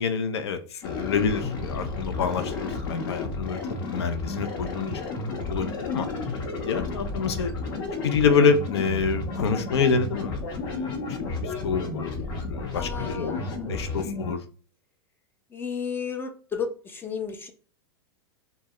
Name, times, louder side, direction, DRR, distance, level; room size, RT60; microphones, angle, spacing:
voice 1, 0.0-3.6 3.9-5.0 5.3-6.1 6.6-7.5 8.0-12.1 12.5-13.4 13.7-14.4, left 5 dB, 80° left, 0.4 m, -27 dB
sound 1, 0.8-14.3, left 3 dB, 60° left, 0.8 m, -32 dB
voice 2, 12.7-14.1 15.5-17.5, left 6 dB, 15° left, 0.3 m, -34 dB
2.2 x 2.0 x 3.4 m
hypercardioid pair, 105°, 13 cm